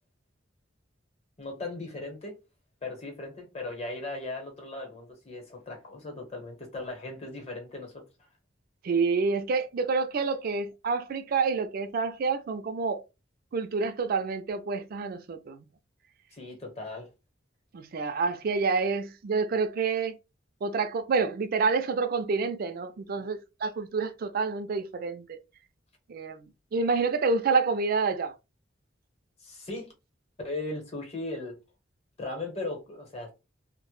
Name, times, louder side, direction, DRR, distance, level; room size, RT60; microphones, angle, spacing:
voice 1, 1.4-2.4 2.8-8.0 16.3-17.1 29.4-29.9 30.4-31.6 32.2-33.3, left 2 dB, 35° left, 0.9 m, -37 dB
voice 2, 8.8-13.0 13.5-15.6 17.7-20.2 20.6-25.4 26.1-28.3, right 4 dB, 50° right, 0.4 m, -28 dB
2.0 x 2.0 x 3.0 m
head